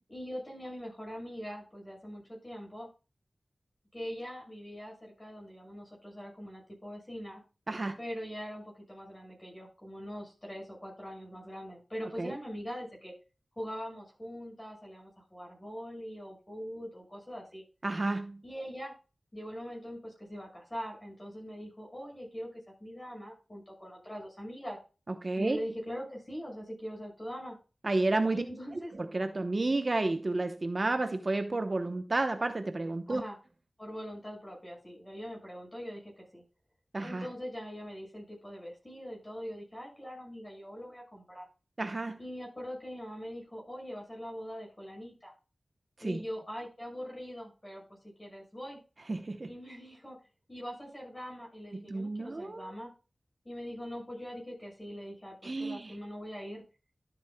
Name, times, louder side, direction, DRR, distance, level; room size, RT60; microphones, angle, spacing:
voice 1, 0.1-2.9 3.9-7.4 8.0-13.1 13.5-17.6 18.4-18.9 19.3-24.8 25.4-27.6 28.3-28.9 33.1-33.4 33.8-36.4 37.0-41.5 42.2-45.3 46.0-48.8 49.5-50.2 50.5-52.9 53.4-56.6, equal, 20° left, 5.9 m, -42 dB
voice 2, 7.7-8.0 12.2-12.4 17.8-18.4 25.2-25.6 27.8-28.4 28.7-33.2 36.9-37.3 41.8-42.2 46.0-46.2 49.1-49.5 51.7-52.7 55.4-56.0, right 2 dB, 40° right, 0.8 m, -31 dB
12.5 x 7.9 x 2.2 m
wide cardioid pair, 95°, 0 cm